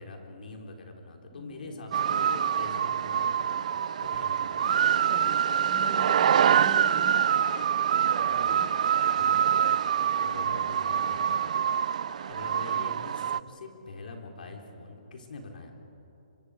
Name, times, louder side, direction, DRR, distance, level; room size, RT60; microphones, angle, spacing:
voice 1, 0.0-3.6 4.0-4.5 8.1-8.9 9.2-9.4 9.8-11.5 12.2-15.7, left 3 dB, 70° left, 2 dB, 4.1 m, -44 dB
voice 2, 1.3-1.8 2.4-2.6 4.6-7.9 8.2-8.9, left 2 dB, 5° left, 3 dB, 1.1 m, -45 dB
sound 1, 1.9-13.4, right 8 dB, 50° right, 0.4 m, -25 dB
28.5 x 24.5 x 5.1 m, 3.0 s
hypercardioid pair, 160°, 5 cm